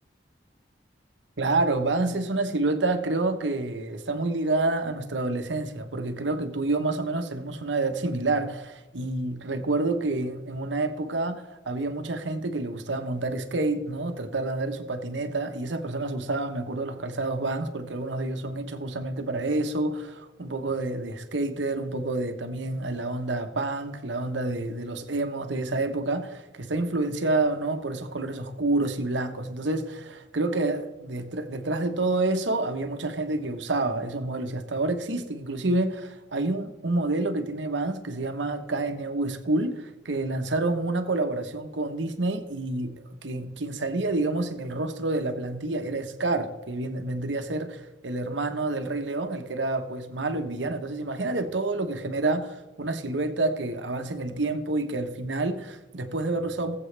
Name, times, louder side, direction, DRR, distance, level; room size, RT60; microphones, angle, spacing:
voice 1, 1.4-56.8, right 2 dB, 85° right, 7 dB, 1.1 m, -28 dB
20.0 x 7.8 x 3.4 m, 1.1 s
head